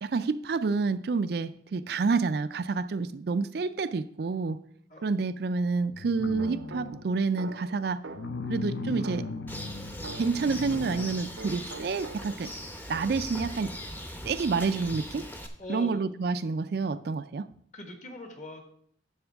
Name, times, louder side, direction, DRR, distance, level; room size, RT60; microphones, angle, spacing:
voice 1, 0.0-4.6 5.0-8.0 8.5-9.3 10.2-12.5 12.9-13.7 14.2-15.3 15.7-17.5, right 4 dB, 60° right, 12 dB, 0.4 m, -28 dB
sound 1, 5.9-7.2 8.1-11.3 11.8-11.9, left 3 dB, 70° left, 0.5 m, -37 dB
sound 2, 6.4-8.5 9.0-11.1 11.4-12.6, right 4 dB, 80° right, 0.7 m, -44 dB
Bird, 9.5-15.5, equal, 10° left, 0.7 m, -40 dB
voice 2, 15.6-16.0 17.7-18.6, left 2 dB, 40° left, 4 dB, 1.5 m, -41 dB
10.5 x 7.2 x 3.5 m, 0.64 s
head